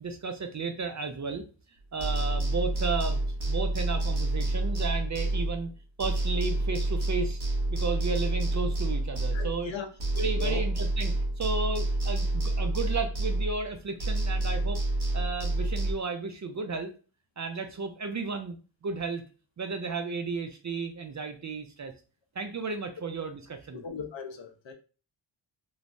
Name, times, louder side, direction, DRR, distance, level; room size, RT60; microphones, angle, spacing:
voice 1, 0.0-1.4 1.9-3.2 3.5-5.7 6.0-7.4 7.7-9.7 10.2-14.8 15.1-16.9 17.4-18.6 18.8-19.2 19.6-21.9 22.4-23.8, right 4 dB, 40° right, 0.4 m, -33 dB
sound 1, 2.0-5.7 6.0-9.7 10.0-13.7 14.0-15.9, right 2 dB, 55° right, 1.0 m, -28 dB
voice 2, 9.3-9.9 10.1-10.6 23.7-24.7, left 6 dB, 65° left, 0.7 m, -38 dB
3.2 x 2.0 x 2.5 m
cardioid pair, 70°, 50 cm